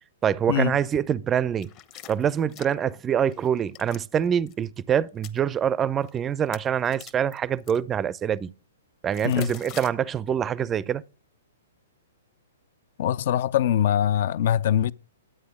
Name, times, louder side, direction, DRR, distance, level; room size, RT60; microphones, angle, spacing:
voice 1, 0.2-1.7 2.1-8.5 9.0-11.0, right 8 dB, 20° right, 0.5 m, -25 dB
sound 1, 1.6-3.0 3.3-4.0 4.4-4.5 5.1-5.4 6.0-6.2 6.5-7.8 9.1-9.9, left 11 dB, 35° left, 0.9 m, -43 dB
voice 2, 9.2-9.5 13.0-14.9, left 10 dB, 50° left, 0.4 m, -23 dB
11.5 x 8.9 x 3.6 m
figure-of-eight pair, 115°, 0 cm